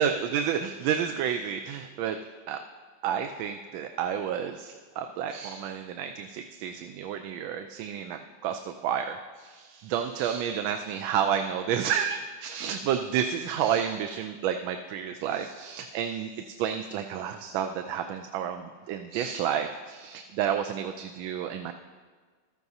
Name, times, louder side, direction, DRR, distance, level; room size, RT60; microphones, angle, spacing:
voice 1, 0.0-2.2 2.5-2.6 3.0-16.3 16.6-21.7, right 8 dB, 85° right, 6 dB, 1.4 m, -30 dB
15.5 x 13.0 x 2.7 m, 1.5 s
omnidirectional pair, 2.1 m